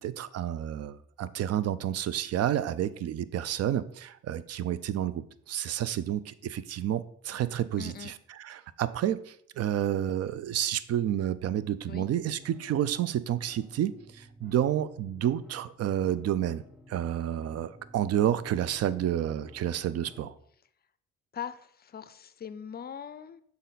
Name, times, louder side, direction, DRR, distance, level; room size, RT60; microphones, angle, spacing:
voice 1, 0.0-8.1 8.4-16.6 16.9-20.3, right 11 dB, 55° right, 16 dB, 0.5 m, -30 dB
voice 2, 7.8-8.1 11.9-12.1 21.3-23.4, left 8 dB, 35° left, 14 dB, 0.4 m, -41 dB
sound 1, 12.4-20.4, equal, ahead, 0.9 m, -54 dB
6.5 x 4.1 x 4.0 m, 0.66 s
cardioid pair, 90°, 30 cm